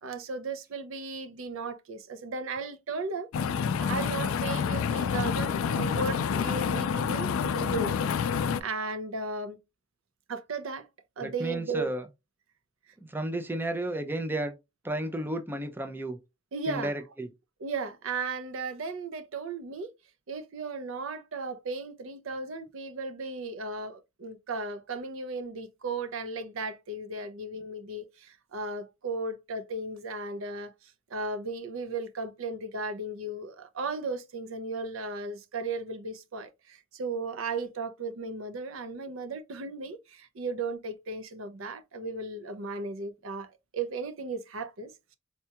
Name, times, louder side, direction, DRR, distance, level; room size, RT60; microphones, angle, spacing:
voice 1, 0.0-3.3 3.8-7.9 8.6-9.6 10.3-10.9 11.2-11.9 12.9-13.0 16.5-16.9 17.6-19.9 20.3-43.5 43.7-45.1, right 3 dB, 70° right, 0.6 m, -35 dB
sound 1, 3.3-8.6, left 6 dB, 80° left, 0.3 m, -28 dB
voice 2, 11.2-12.1 13.0-14.5 14.8-16.2 16.7-17.3, right 1 dB, 10° right, 0.4 m, -32 dB
4.3 x 2.3 x 2.8 m
head